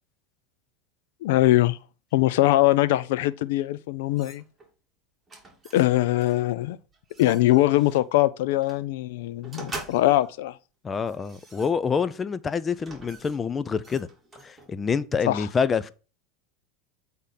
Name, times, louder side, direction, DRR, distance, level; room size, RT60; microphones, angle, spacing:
voice 1, 1.2-1.8 2.1-4.4 5.7-6.8 7.2-10.5 15.3-15.4, left 16 dB, 75° left, 0.5 m, -22 dB
sound 1, 4.2-4.7 5.3-5.9 6.2-6.4 6.9-8.0 8.6-8.8 9.4-10.3 10.9-12.1 12.7-14.8, right 3 dB, 15° right, 3.2 m, -44 dB
voice 2, 10.8-14.1 14.4-15.9, left 6 dB, 25° left, 0.6 m, -27 dB
8.2 x 3.7 x 5.8 m
supercardioid pair, 105°, 0 cm